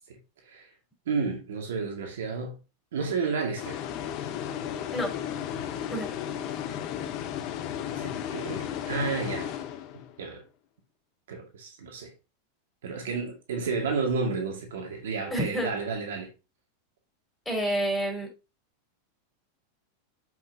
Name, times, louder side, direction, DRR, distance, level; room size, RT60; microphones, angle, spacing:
voice 1, 1.1-2.6 2.9-3.8 7.9-9.5 9.9-10.4 11.3-12.1 12.8-16.3, right 4 dB, 75° right, 2.3 m, -31 dB
sound 1, 3.6-10.2, left 9 dB, 50° left, 1.1 m, -34 dB
voice 2, 15.3-15.7 17.4-18.3, equal, 10° left, 4.8 m, -28 dB
7.6 x 5.9 x 2.9 m
hypercardioid pair, 95°, 0 cm